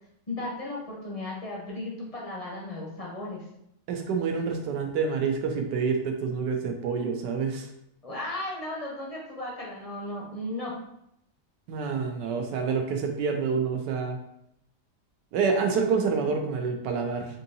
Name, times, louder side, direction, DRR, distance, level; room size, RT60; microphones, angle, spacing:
voice 1, 0.3-3.4 8.0-10.7, left 1 dB, 35° left, -4 dB, 0.6 m, -35 dB
voice 2, 3.9-7.7 11.7-14.2 15.3-17.3, right 5 dB, 85° right, 3 dB, 1.2 m, -27 dB
4.5 x 2.7 x 2.6 m, 0.78 s
omnidirectional pair, 1.8 m